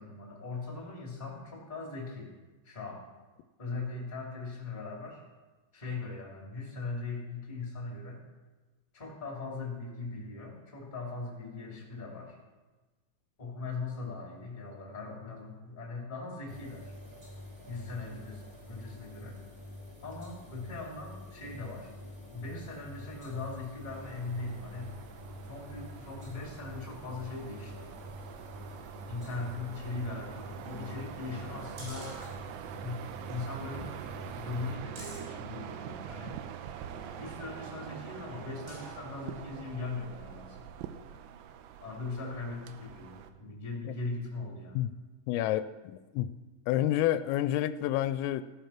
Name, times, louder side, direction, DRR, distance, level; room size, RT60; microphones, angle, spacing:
voice 1, 0.0-2.4 2.6-3.0 3.6-5.2 5.7-8.2 8.9-12.4 13.4-16.9 17.7-19.4 20.0-21.9 22.3-24.9 25.5-27.9 29.1-32.2 32.8-33.9 34.3-36.4 37.2-40.7 41.8-44.8, left 3 dB, 10° left, -2 dB, 2.5 m, -40 dB
sound 1, 16.5-34.8, left 1 dB, 45° right, 1.1 m, -47 dB
sound 2, 23.9-43.3, right 10 dB, 80° right, 2.7 m, -45 dB
sound 3, 30.7-32.8 33.2-33.4 33.7-36.3 36.9-39.1 39.6-39.7, right 2 dB, 65° right, 6.2 m, -49 dB
voice 2, 45.3-46.3 46.7-48.4, left 13 dB, 85° left, 13 dB, 3.2 m, -29 dB
16.0 x 10.5 x 5.9 m, 1.2 s
omnidirectional pair, 5.9 m